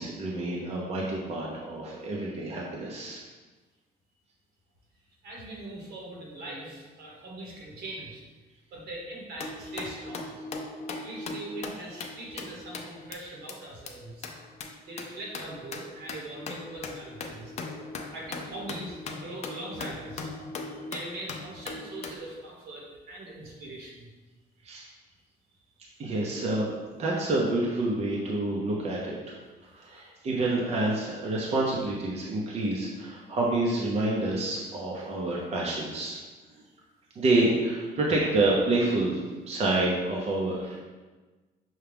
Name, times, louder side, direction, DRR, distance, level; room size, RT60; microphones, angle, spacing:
voice 1, 0.0-3.2 24.6-24.9 26.0-26.7 27.0-29.2 29.7-36.2 37.2-39.2 39.5-40.8, right 2 dB, 40° right, -3 dB, 0.7 m, -28 dB
voice 2, 5.2-8.2 8.7-10.3 11.0-14.3 14.8-17.5 18.1-20.3 20.9-24.1, right 1 dB, 75° right, -2 dB, 1.3 m, -41 dB
sound 1, 9.4-13.1 13.5-13.6 13.9-14.0 14.2-22.2, left 3 dB, 40° left, 0.5 m, -39 dB
5.7 x 2.4 x 3.4 m, 1.3 s
cardioid pair, 110°, 17 cm